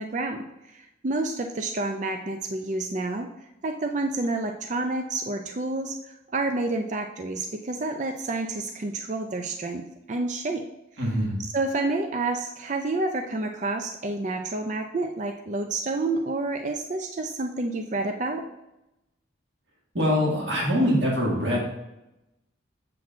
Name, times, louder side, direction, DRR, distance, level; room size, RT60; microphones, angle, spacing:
voice 1, 0.0-3.3 3.6-10.6 11.5-18.5, right 2 dB, 40° right, 5 dB, 0.4 m, -29 dB
voice 2, 11.0-11.3 19.9-21.6, equal, 65° right, -4 dB, 1.9 m, -23 dB
7.7 x 7.3 x 2.5 m, 0.92 s
head